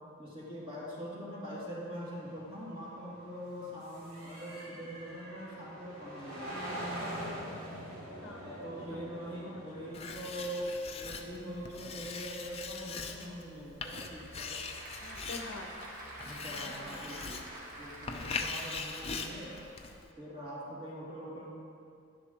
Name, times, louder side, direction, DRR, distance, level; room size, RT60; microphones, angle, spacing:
voice 1, 0.2-6.8 8.4-10.7 10.9-14.6 16.2-17.4 17.8-19.6 20.2-21.5, equal, 25° right, -7 dB, 2.3 m, -43 dB
sound 1, 1.9-12.6, equal, 90° right, 2.6 m, -45 dB
voice 2, 8.2-9.1 9.4-10.0 15.0-15.7 16.5-17.3 19.8-20.1, left 3 dB, 65° left, 2 dB, 0.8 m, -49 dB
Writing, 9.9-20.1, left 4 dB, 30° left, 0.5 m, -42 dB
Applause / Crowd, 13.7-19.9, right 1 dB, 40° right, 1.4 m, -47 dB
11.0 x 10.5 x 3.0 m, 2.4 s
head